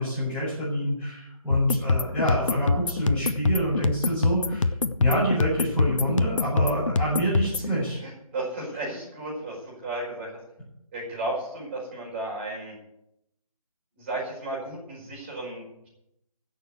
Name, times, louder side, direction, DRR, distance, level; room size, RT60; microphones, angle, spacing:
voice 1, 0.0-4.7 5.0-8.0, equal, 5° left, -8 dB, 4.5 m, -27 dB
sound 1, 1.5-7.7, left 3 dB, 60° left, 0.9 m, -25 dB
voice 2, 8.0-10.3 10.9-12.7 14.0-15.9, right 2 dB, 20° right, -4 dB, 5.1 m, -34 dB
16.0 x 6.8 x 8.1 m, 0.82 s
figure-of-eight pair, 160°, 18 cm